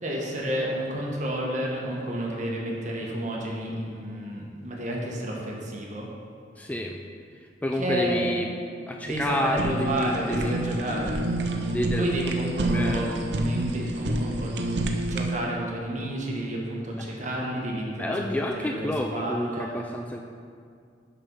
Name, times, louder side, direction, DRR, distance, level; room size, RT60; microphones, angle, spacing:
voice 1, 0.0-6.1 7.7-8.2 9.0-11.2 12.0-18.1 18.5-19.8, right 1 dB, 45° right, -2 dB, 1.4 m, -31 dB
voice 2, 6.6-7.0 7.4-8.5 8.9-10.6 10.9-11.0 11.7-12.1 12.7-13.2 17.0-17.1 18.0-20.2, left 1 dB, 10° left, 2 dB, 0.3 m, -29 dB
Fire, 9.1-15.4, right 1 dB, 65° right, 0.7 m, -28 dB
6.6 x 6.2 x 5.5 m, 2.3 s
head